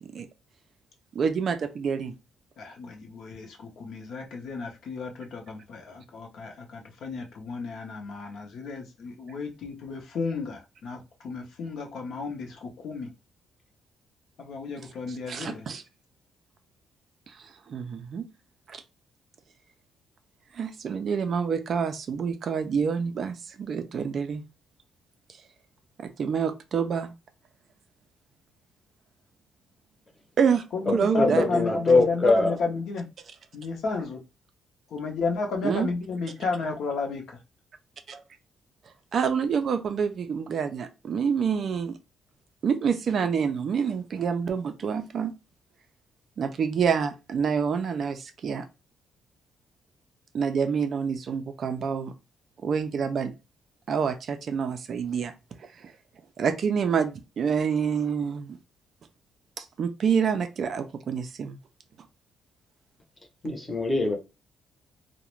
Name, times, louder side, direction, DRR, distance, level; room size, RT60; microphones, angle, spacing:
voice 1, 1.1-2.1 15.3-15.8 17.3-18.3 18.7-18.8 20.5-24.4 26.0-27.1 30.4-31.6 35.6-35.9 38.1-38.2 39.1-42.0 42.6-45.3 46.4-48.7 50.3-52.1 52.6-53.3 53.9-55.3 55.6-55.9 56.4-58.6 59.6-61.6, right 6 dB, 45° right, 0.3 m, -27 dB
voice 2, 2.6-13.1 14.4-15.7 30.7-33.1 33.5-34.2 34.9-37.4, left 4 dB, 60° left, 0.6 m, -33 dB
voice 3, 30.9-32.6 63.4-64.2, left 3 dB, 15° left, 0.7 m, -23 dB
2.3 x 2.0 x 3.0 m
cardioid pair, 165°, 0 cm